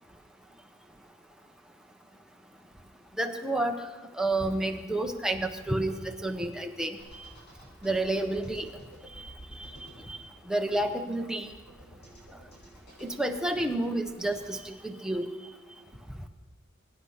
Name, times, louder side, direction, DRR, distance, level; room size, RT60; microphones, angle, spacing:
voice 1, 3.2-3.8 4.2-7.0 7.8-8.7 10.1-10.2 10.5-11.5 13.0-15.3, right 1 dB, 5° right, 4 dB, 1.0 m, -30 dB
sound 1, 7.0-14.7, equal, 55° left, 6.6 m, -52 dB
23.0 x 10.0 x 5.7 m, 1.4 s
head